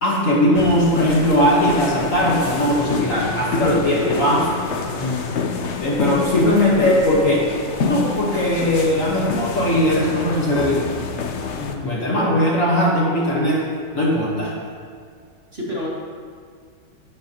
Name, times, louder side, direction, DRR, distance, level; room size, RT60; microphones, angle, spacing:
voice 1, 0.0-4.5 4.9-5.0 5.8-7.5 7.8-10.8 11.8-13.7 13.9-14.5, left 1 dB, 45° left, -4 dB, 1.6 m, -19 dB
sound 1, 0.5-11.8, left 4 dB, 85° left, 0.6 m, -28 dB
voice 2, 4.9-5.4 11.5-12.0 15.5-15.9, left 3 dB, 30° right, -6 dB, 2.0 m, -29 dB
12.0 x 10.5 x 3.0 m, 2.1 s
omnidirectional pair, 2.2 m